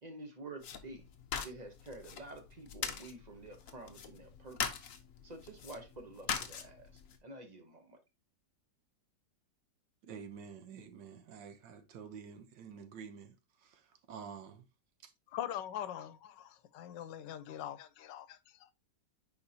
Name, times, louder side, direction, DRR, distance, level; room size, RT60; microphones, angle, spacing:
voice 1, 0.0-1.1 1.4-4.6 5.2-6.9 7.2-8.0, right 2 dB, 30° right, 0.8 m, -49 dB
sound 1, 0.6-7.2, left 7 dB, 55° left, 1.1 m, -42 dB
voice 2, 10.0-14.6 15.0-15.1, right 6 dB, 85° right, 1.6 m, -49 dB
voice 3, 15.3-18.7, left 11 dB, 85° left, 1.3 m, -42 dB
9.8 x 4.3 x 2.8 m
omnidirectional pair, 1.9 m